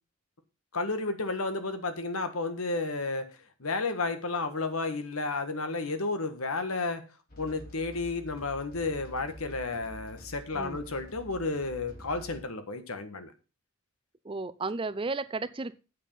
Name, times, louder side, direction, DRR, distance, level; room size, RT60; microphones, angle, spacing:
voice 1, 0.7-3.3 3.6-7.0 7.4-13.3, left 3 dB, 85° left, 9 dB, 1.5 m, -32 dB
sound 1, 7.3-12.4, left 1 dB, 45° left, 2.6 m, -48 dB
voice 2, 14.2-15.8, right 3 dB, 25° right, 16 dB, 0.5 m, -33 dB
8.5 x 7.3 x 5.6 m, 0.31 s
head